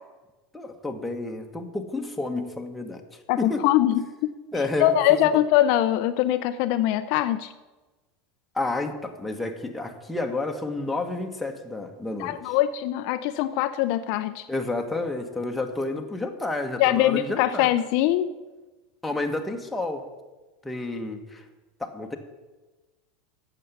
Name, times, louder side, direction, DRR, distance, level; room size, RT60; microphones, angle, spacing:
voice 1, 0.5-3.6 4.5-5.3 8.5-12.5 14.5-17.7 19.0-20.1 20.6-21.4 21.8-22.2, left 2 dB, 5° left, 2 dB, 1.2 m, -30 dB
voice 2, 3.3-4.3 4.8-7.5 12.2-14.5 16.8-18.3, left 13 dB, 65° left, 11 dB, 0.4 m, -22 dB
9.2 x 6.9 x 6.9 m, 1.2 s
supercardioid pair, 110°, 0 cm